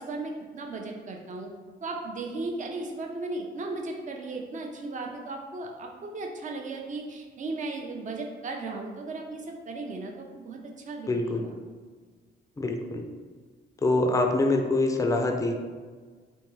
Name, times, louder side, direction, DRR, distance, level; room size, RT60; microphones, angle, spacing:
voice 1, 0.0-1.5 1.8-10.6 10.8-11.6, right 3 dB, 40° right, 2 dB, 0.6 m, -36 dB
voice 2, 11.1-11.4 12.6-13.0 13.8-15.5, left 2 dB, 15° left, 4 dB, 0.4 m, -25 dB
3.5 x 2.6 x 3.1 m, 1.5 s
cardioid pair, 90°, 20 cm